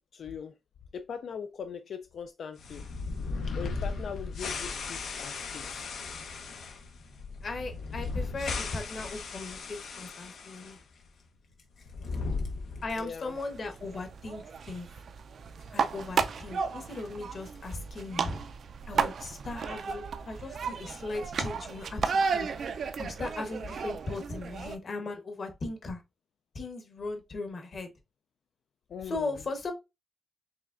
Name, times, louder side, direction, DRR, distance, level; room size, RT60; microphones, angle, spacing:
voice 1, 0.1-0.5 0.9-2.8 3.5-5.9 11.8-12.2 13.0-13.3 28.9-29.3, left 7 dB, 70° left, 0.3 m, -41 dB
sound 1, 2.6-10.8 11.0-11.1 11.8-13.1, left 4 dB, 90° left, 0.8 m, -36 dB
voice 2, 7.4-10.8 12.8-14.9 15.7-18.4 18.9-26.0 26.5-27.9 29.0-29.7, left 3 dB, 45° left, 1.0 m, -38 dB
sound 2, 13.3-24.8, right 5 dB, 65° right, 0.4 m, -34 dB
4.8 x 3.2 x 2.5 m
cardioid pair, 120°, 0 cm